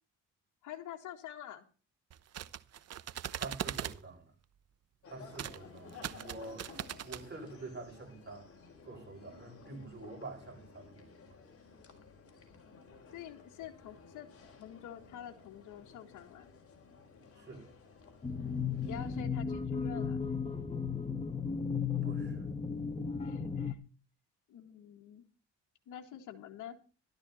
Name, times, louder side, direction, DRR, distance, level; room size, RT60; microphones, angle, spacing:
voice 1, 0.6-1.7 13.1-14.3 14.6-16.5 18.8-20.2 23.2-23.8 24.5-25.2 25.9-26.8, left 10 dB, 80° left, 1.8 m, -47 dB
sound 1, 2.1-4.0 5.3-5.6 5.9-7.2, right 10 dB, 55° right, 0.9 m, -40 dB
voice 2, 3.3-4.3 5.1-8.5 8.9-11.4 17.4-17.7 22.0-22.5, right 3 dB, 35° right, 7.3 m, -47 dB
sound 2, 5.0-19.2, left 4 dB, 50° left, 4.2 m, -55 dB
sound 3, 18.2-23.7, left 6 dB, 20° left, 1.6 m, -35 dB
13.5 x 12.5 x 4.3 m
cardioid pair, 90°, 30 cm